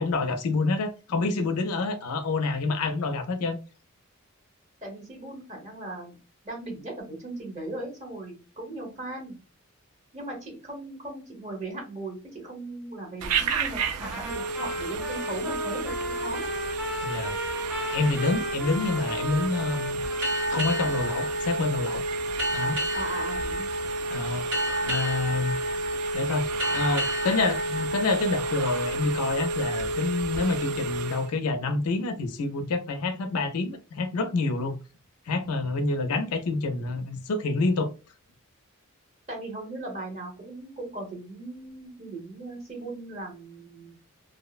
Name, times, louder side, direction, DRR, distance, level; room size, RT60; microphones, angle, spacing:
voice 1, 0.0-3.6 17.0-17.3 17.9-20.0 20.5-22.0 22.5-22.7 24.1-24.4 24.8-25.6 26.1-26.5 26.7-34.8 35.3-37.9, left 3 dB, 90° left, 0.4 m, -27 dB
voice 2, 4.8-6.1 6.4-9.4 10.1-16.5 22.9-23.7 39.3-43.9, right 2 dB, 30° right, 1.0 m, -38 dB
Telephone, 13.2-31.3, right 2 dB, 85° right, 0.4 m, -31 dB
Trumpet, 14.0-21.4, equal, 5° right, 0.4 m, -37 dB
sound 1, 20.2-29.4, right 1 dB, 60° right, 1.5 m, -33 dB
2.6 x 2.0 x 2.4 m
head